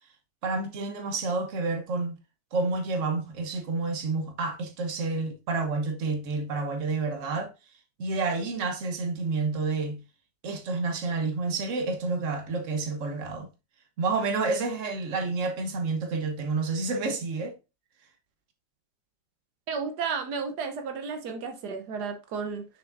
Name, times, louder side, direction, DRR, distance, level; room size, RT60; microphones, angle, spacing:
voice 1, 0.4-2.2 2.5-7.5 8.0-10.0 10.4-13.5 14.0-17.6, right 3 dB, 55° right, 1.5 m, -29 dB
voice 2, 19.7-22.6, right 5 dB, 85° right, 1.5 m, -33 dB
6.8 x 6.1 x 2.6 m
omnidirectional pair, 1.7 m